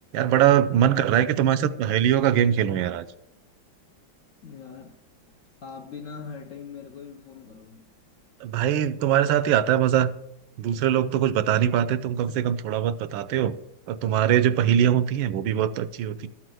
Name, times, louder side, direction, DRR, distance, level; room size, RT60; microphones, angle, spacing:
voice 1, 0.1-3.0 8.4-10.1 10.6-13.6 13.9-16.3, right 10 dB, 85° right, 1.4 m, -22 dB
voice 2, 0.9-1.6 4.4-5.0 5.6-7.9 12.3-12.5, left 5 dB, 60° left, 0.8 m, -42 dB
13.0 x 4.4 x 7.6 m
omnidirectional pair, 2.1 m